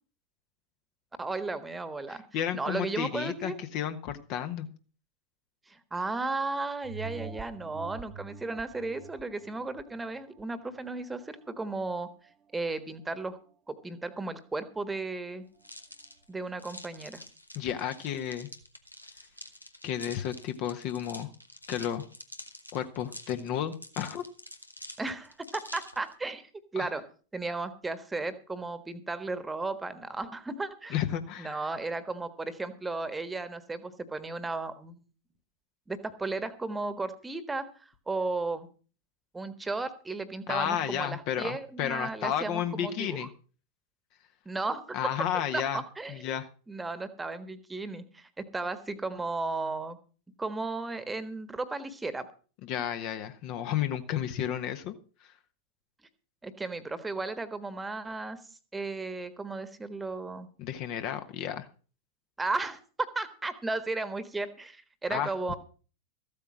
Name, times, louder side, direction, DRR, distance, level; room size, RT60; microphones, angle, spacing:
voice 1, 1.2-3.6 5.7-12.1 12.5-13.4 13.7-15.4 16.3-17.2 25.0-27.0 27.3-30.9 31.4-35.0 35.9-38.7 39.3-43.3 44.4-45.0 45.5-46.2 46.7-50.0 50.4-52.3 56.4-58.4 58.7-60.5 62.4-65.5, right 3 dB, 10° right, 12 dB, 1.4 m, -35 dB
voice 2, 2.3-4.7 17.5-18.5 19.8-21.3 21.7-22.0 22.7-24.2 26.8-26.9 30.9-31.6 40.5-43.3 44.9-45.8 46.1-46.5 52.7-54.9 60.6-61.7 65.1-65.5, left 10 dB, 40° left, 8 dB, 1.2 m, -32 dB
sound 1, 6.8-11.8 12.3-12.4, right 5 dB, 25° right, 1.2 m, -46 dB
sound 2, 15.6-26.1, left 1 dB, 85° left, 1.2 m, -47 dB
14.5 x 8.5 x 6.1 m, 0.39 s
figure-of-eight pair, 90°, 0 cm